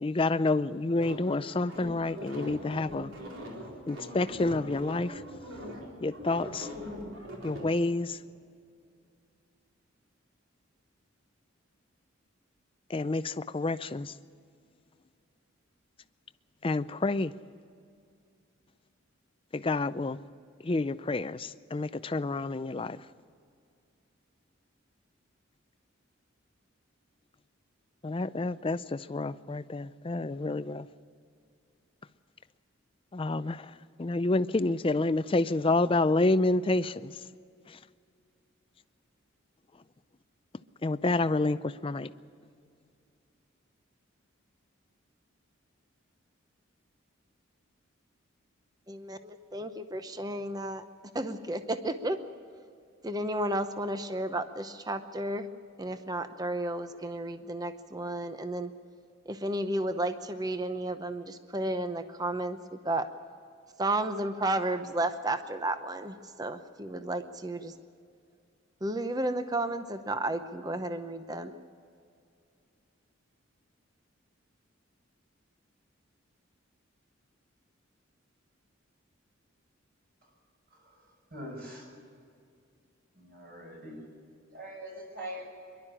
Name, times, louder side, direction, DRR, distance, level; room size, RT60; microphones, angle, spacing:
voice 1, 0.0-3.1 3.9-5.2 6.0-6.7 7.4-8.2 12.9-14.1 16.6-17.3 19.5-20.2 20.6-23.0 28.0-30.9 33.1-33.7 34.0-37.1 37.7-37.8 40.8-42.1, left 2 dB, 25° left, 0.5 m, -29 dB
sound 1, 1.0-7.7, equal, 70° right, 4.1 m, -41 dB
voice 2, 48.9-50.8 51.1-52.2 53.0-55.5 55.8-58.7 59.3-62.6 62.8-63.1 63.8-67.7 68.8-71.6, right 1 dB, 20° right, 0.8 m, -32 dB
voice 3, 81.3-81.8 83.2-83.9 84.5-85.5, equal, 50° right, 6.7 m, -42 dB
24.0 x 12.0 x 9.9 m
head